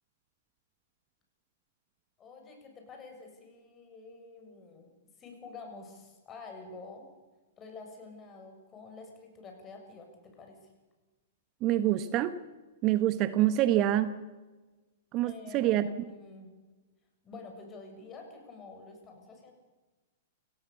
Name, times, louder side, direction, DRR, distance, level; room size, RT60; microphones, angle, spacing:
voice 1, 2.2-4.9 5.2-7.1 7.6-10.6 15.2-16.5 17.2-19.5, left 3 dB, 25° left, 3 dB, 7.4 m, -48 dB
voice 2, 11.6-12.3 12.8-14.2 15.1-15.9, right 13 dB, 35° right, 13 dB, 1.1 m, -26 dB
28.0 x 18.5 x 7.1 m, 1.2 s
figure-of-eight pair, 105°, 0 cm